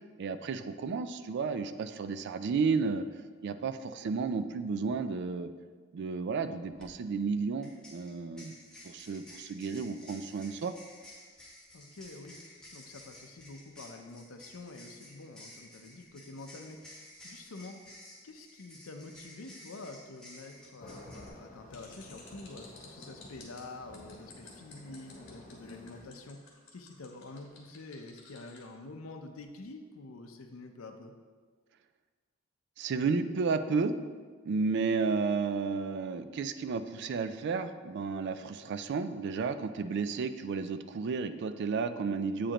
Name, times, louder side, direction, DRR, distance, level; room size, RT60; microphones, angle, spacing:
voice 1, 0.2-3.0 3.4-5.5 5.9-8.5 8.8-10.7 32.8-33.9 34.4-42.5, right 4 dB, 55° right, 10 dB, 0.3 m, -32 dB
sound 1, 6.8-6.9 7.6-21.3, left 1 dB, 5° left, 1.3 m, -53 dB
voice 2, 11.7-12.4 12.7-17.7 18.2-31.1, left 2 dB, 80° left, 5 dB, 0.6 m, -47 dB
sound 2, 20.8-26.1, left 2 dB, 40° left, 0.7 m, -51 dB
sound 3, 21.7-28.6, left 5 dB, 60° left, 1.6 m, -54 dB
8.5 x 5.0 x 2.9 m, 1.5 s
head